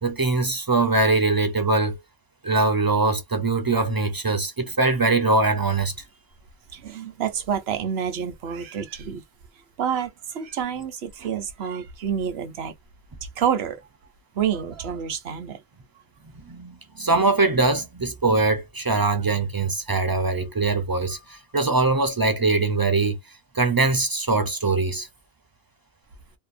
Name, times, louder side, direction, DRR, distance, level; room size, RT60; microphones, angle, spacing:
voice 1, 0.0-2.0 2.4-5.9 16.3-23.2 23.5-25.1, right 3 dB, 35° right, 0.3 m, -22 dB
voice 2, 6.7-9.2 9.8-12.8 13.2-13.9 14.3-15.6, right 8 dB, 70° right, 0.9 m, -28 dB
2.8 x 2.1 x 2.5 m
omnidirectional pair, 1.1 m